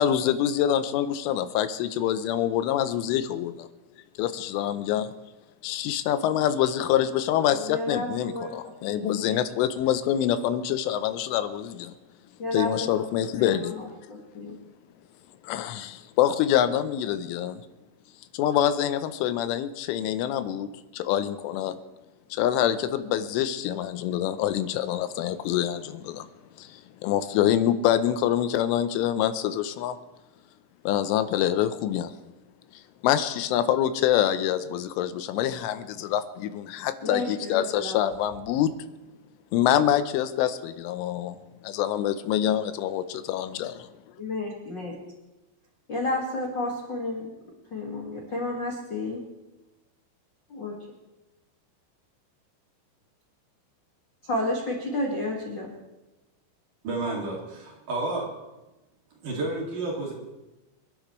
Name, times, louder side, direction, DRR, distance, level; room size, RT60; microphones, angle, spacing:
voice 1, 0.0-3.7 4.2-5.1 5.6-11.9 12.5-13.7 15.4-17.6 18.3-21.8 22.3-26.3 26.6-30.0 30.8-32.1 33.0-38.7 39.5-41.4 41.6-43.9, left 11 dB, 90° left, 11 dB, 3.3 m, -26 dB
voice 2, 7.5-8.5 8.8-9.4 12.4-13.1 13.4-14.5 37.0-38.0 44.2-45.0 45.9-47.3 47.7-49.2 50.5-50.8 54.2-55.7, left 2 dB, 60° left, -2 dB, 1.2 m, -31 dB
voice 3, 56.8-58.3 59.2-60.1, right 2 dB, 50° right, -2 dB, 3.5 m, -30 dB
27.5 x 12.0 x 3.2 m, 1.1 s
omnidirectional pair, 5.5 m